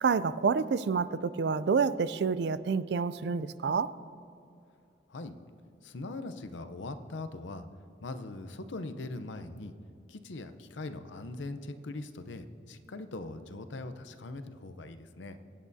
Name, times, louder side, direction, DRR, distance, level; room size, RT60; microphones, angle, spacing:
voice 1, 0.0-3.9, right 5 dB, 65° right, 16 dB, 0.4 m, -28 dB
voice 2, 5.8-7.7 8.0-9.7 10.1-15.4, left 2 dB, 80° left, 10 dB, 0.7 m, -41 dB
23.5 x 8.6 x 2.7 m, 2.6 s
head